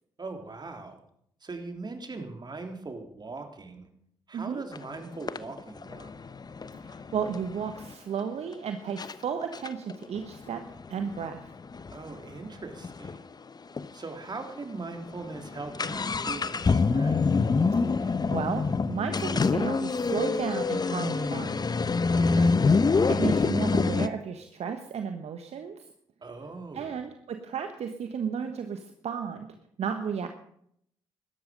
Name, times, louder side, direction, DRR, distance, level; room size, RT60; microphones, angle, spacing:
voice 1, 0.2-1.0 1.4-3.9 4.3-6.1 11.9-13.2 13.9-17.3 22.1-22.6 26.2-27.0, right 3 dB, 35° right, 5 dB, 3.6 m, -40 dB
voice 2, 4.3-4.6 6.7-10.6 10.9-11.5 17.9-21.6 23.1-25.8 26.7-29.5 29.8-30.3, right 7 dB, 60° right, 7 dB, 1.3 m, -33 dB
sound 1, 4.7-4.8 5.3-7.9 8.5-8.6 9.0-9.1 9.5-13.2 13.5-13.6 13.8-13.9 14.5-14.6 14.9-24.1, left 4 dB, 35° left, 1.0 m, -26 dB
17.0 x 13.0 x 5.3 m, 0.69 s
hypercardioid pair, 45°, 12 cm